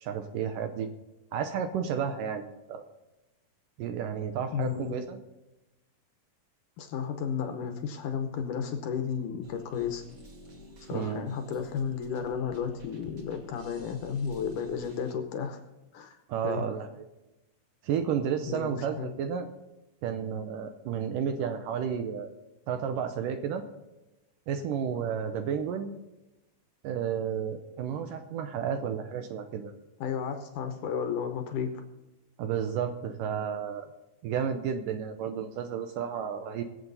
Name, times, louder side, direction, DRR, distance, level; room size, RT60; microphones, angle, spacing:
voice 1, 0.0-0.9 1.3-2.8 3.8-5.2 10.9-11.3 16.3-16.9 17.8-19.5 20.0-22.3 22.7-23.6 24.5-26.0 26.8-29.7 32.4-33.9 34.2-36.6, right 7 dB, 75° right, 7 dB, 2.1 m, -32 dB
voice 2, 4.5-4.9 6.8-10.0 10.9-15.6 15.9-16.2 16.4-16.6 18.5-19.1 30.0-31.8, left 7 dB, 70° left, 6 dB, 2.2 m, -33 dB
sound 1, 9.4-15.1, equal, 50° right, 1.0 m, -51 dB
23.0 x 7.8 x 4.0 m, 1.0 s
omnidirectional pair, 4.4 m